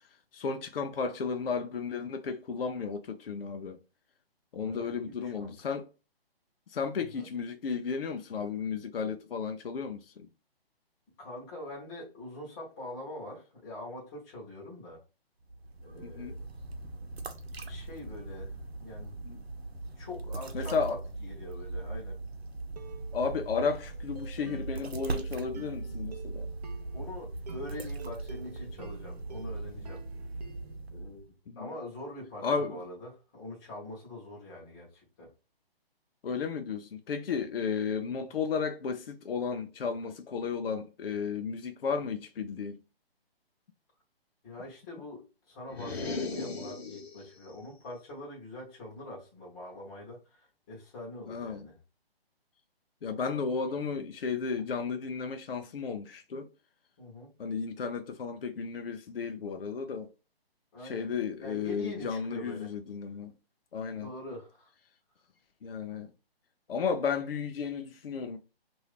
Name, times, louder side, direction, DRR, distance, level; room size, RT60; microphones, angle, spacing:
voice 1, 0.3-3.8 4.5-5.9 6.7-10.3 16.0-16.4 19.3-19.4 20.5-21.0 23.1-26.5 31.5-31.7 32.4-32.8 36.2-42.8 51.3-51.6 53.0-56.5 57.4-60.1 60.8-63.3 63.7-64.1 65.6-66.1 66.7-68.4, left 5 dB, 65° left, 0.6 m, -33 dB
voice 2, 4.7-5.6 7.1-7.3 11.2-15.0 15.8-16.4 17.6-18.5 18.8-19.2 20.0-22.2 26.9-30.0 30.9-31.3 31.6-35.3 44.4-51.8 57.0-57.3 60.7-61.1 61.4-62.8 63.9-64.7, left 1 dB, 20° left, 1.0 m, -44 dB
sound 1, 15.4-31.3, right 2 dB, 80° right, 0.8 m, -40 dB
sound 2, 21.9-22.1 22.8-30.8, right 6 dB, 40° right, 0.6 m, -51 dB
sound 3, 45.7-47.3, left 3 dB, 90° left, 0.9 m, -36 dB
2.8 x 2.6 x 3.3 m
figure-of-eight pair, 150°, 31 cm